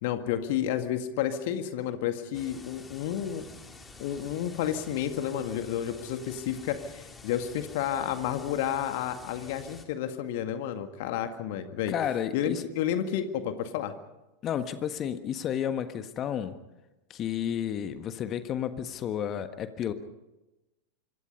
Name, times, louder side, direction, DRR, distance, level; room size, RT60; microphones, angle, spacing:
voice 1, 0.0-3.5 4.0-11.9 12.3-13.9, left 10 dB, 50° left, 8 dB, 2.0 m, -31 dB
sound 1, 2.3-9.9, left 3 dB, 15° left, 3.1 m, -49 dB
voice 2, 11.9-12.6 14.4-16.6 17.1-19.9, left 9 dB, 30° left, 10 dB, 1.5 m, -31 dB
25.5 x 24.5 x 5.5 m, 1.0 s
figure-of-eight pair, 90°, 0 cm